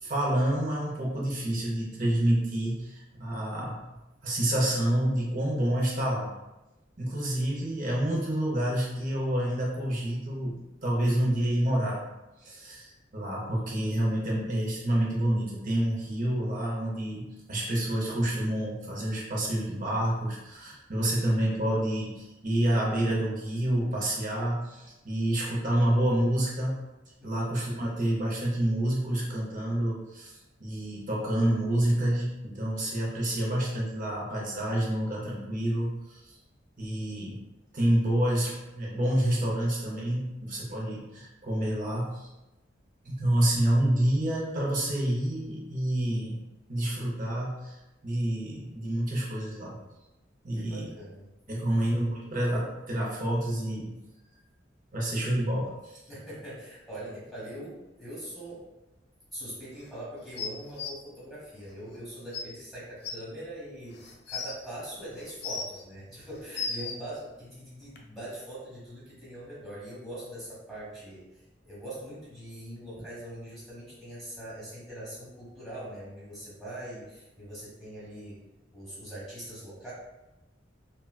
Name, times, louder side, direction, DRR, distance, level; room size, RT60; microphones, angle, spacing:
voice 1, 0.0-3.8 4.2-6.3 7.0-12.1 12.4-26.8 27.2-30.3 30.6-36.2 36.8-37.4 37.7-42.3 43.0-46.4 46.7-47.8 48.0-49.8 50.4-50.9 51.5-53.9 54.9-56.0, right 1 dB, 45° right, -3 dB, 0.8 m, -28 dB
voice 2, 50.5-51.8 56.1-58.6 59.3-64.0 64.3-78.4 78.7-79.9, right 1 dB, ahead, -8 dB, 1.3 m, -42 dB
sound 1, 60.4-60.9 61.9-62.0 62.3-62.4 63.0-63.1 63.9-64.5 65.2-65.8 66.3-67.0 68.0-68.1, left 5 dB, 60° left, 0.4 m, -35 dB
3.8 x 2.2 x 2.3 m, 1.0 s
head